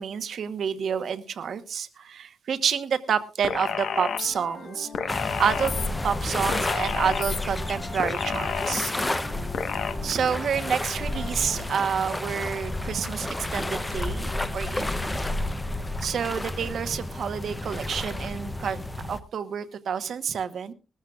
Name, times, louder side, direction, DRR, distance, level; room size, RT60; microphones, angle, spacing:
voice 1, 0.0-5.7 6.0-8.9 10.0-15.2 16.0-18.8 19.1-20.7, right 7 dB, 55° right, 11 dB, 1.1 m, -29 dB
sound 1, 3.4-4.3 4.9-5.9 6.5-7.4 8.0-8.9 9.5-9.9, left 7 dB, 65° left, 1.2 m, -30 dB
sound 2, 3.5-11.7, left 3 dB, 40° left, 3.2 m, -42 dB
sound 3, 5.1-19.2, left 1 dB, 10° left, 0.7 m, -31 dB
20.5 x 14.0 x 2.4 m, 0.30 s
wide cardioid pair, 175°, 0 cm